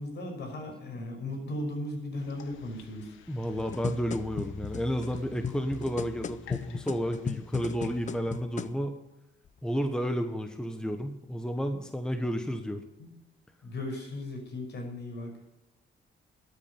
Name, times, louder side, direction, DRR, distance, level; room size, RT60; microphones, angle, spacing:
voice 1, 0.0-3.1 13.0-13.1 13.6-15.3, left 1 dB, 60° left, 3 dB, 5.6 m, -36 dB
sound 1, 2.1-8.3, left 4 dB, 80° left, 1.4 m, -49 dB
voice 2, 3.3-9.0 9.6-12.8, equal, 5° left, 7 dB, 1.2 m, -31 dB
sound 2, 3.4-8.8 9.4-9.5, left 7 dB, 40° left, 0.6 m, -37 dB
13.0 x 8.9 x 7.1 m, 0.96 s
cardioid pair, 90°, 20 cm